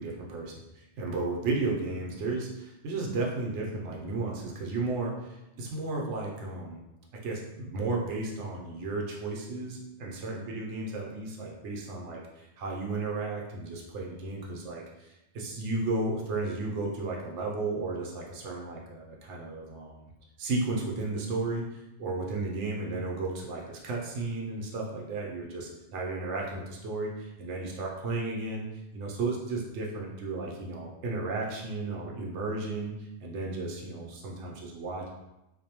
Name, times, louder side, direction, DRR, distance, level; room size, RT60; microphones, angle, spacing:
voice 1, 0.0-6.8 7.1-20.0 20.4-21.6 22.0-28.6 28.9-32.9 33.2-35.1, right 3 dB, 80° right, -1 dB, 0.9 m, -34 dB
2.5 x 2.1 x 2.8 m, 0.94 s
omnidirectional pair, 1.2 m